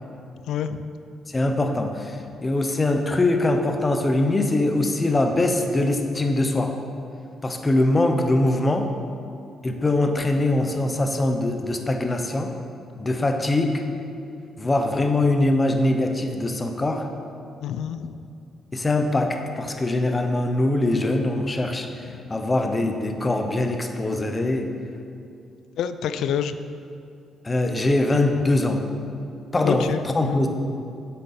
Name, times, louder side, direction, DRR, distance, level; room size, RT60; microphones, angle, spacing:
voice 1, 0.5-0.9 2.3-2.4 17.6-18.2 22.1-22.2 25.8-26.6 29.6-30.4, left 8 dB, 80° left, 11 dB, 0.4 m, -28 dB
voice 2, 1.3-6.7 7.4-8.9 9.6-12.5 13.0-13.8 14.6-17.1 18.7-24.7 27.4-28.8 29.5-30.5, left 2 dB, 25° left, 5 dB, 0.9 m, -22 dB
7.9 x 6.8 x 5.6 m, 2.5 s
cardioid pair, 90°, 0 cm